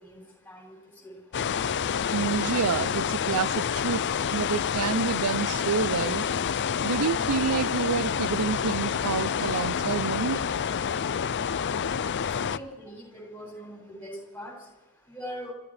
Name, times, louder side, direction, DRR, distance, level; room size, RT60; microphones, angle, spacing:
voice 1, 1.0-1.4 7.2-7.3 12.4-14.5 15.1-15.5, equal, 10° left, -1 dB, 7.1 m, -41 dB
sound 1, 1.3-12.6, left 7 dB, 55° left, 0.5 m, -28 dB
voice 2, 2.1-4.0 4.3-6.3 6.8-10.4, right 6 dB, 75° right, 16 dB, 0.5 m, -28 dB
29.5 x 14.5 x 3.4 m, 1.1 s
head